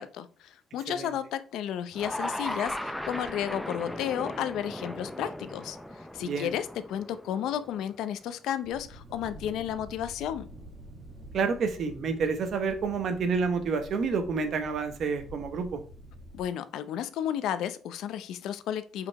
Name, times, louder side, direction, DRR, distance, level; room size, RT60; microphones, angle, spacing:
voice 1, 0.0-5.8 6.1-10.5 16.3-19.1, left 10 dB, 75° left, 0.6 m, -33 dB
sound 1, 1.9-8.2, left 1 dB, 5° left, 0.5 m, -37 dB
sound 2, 8.6-16.4, right 1 dB, 30° right, 1.9 m, -48 dB
voice 2, 11.3-15.8, right 5 dB, 50° right, 1.1 m, -29 dB
5.4 x 5.0 x 4.7 m
cardioid pair, 165°, 0 cm